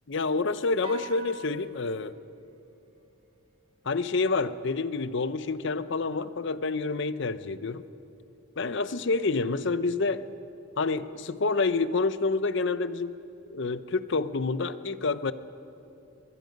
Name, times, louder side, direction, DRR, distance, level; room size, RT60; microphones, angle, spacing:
voice 1, 0.1-2.1 3.9-7.8 8.6-10.2 10.8-13.2 13.5-15.3, left 3 dB, 60° left, 14 dB, 0.7 m, -28 dB
sound 1, 0.8-3.4, right 3 dB, 30° right, 2.0 m, -45 dB
23.0 x 21.5 x 5.3 m, 2.7 s
head